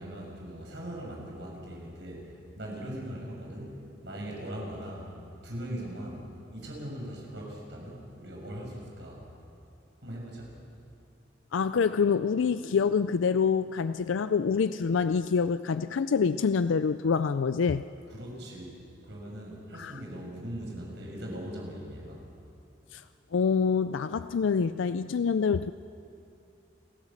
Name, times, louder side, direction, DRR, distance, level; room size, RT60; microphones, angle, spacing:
voice 1, 0.0-5.1 5.4-6.3 6.5-9.2 10.0-10.5 18.1-18.8 19.0-22.2, equal, 65° right, -1 dB, 6.2 m, -40 dB
voice 2, 11.5-17.8 19.8-20.0 22.9-23.0 23.3-25.7, left 5 dB, 90° left, 12 dB, 0.4 m, -26 dB
28.5 x 15.0 x 7.3 m, 2.6 s
head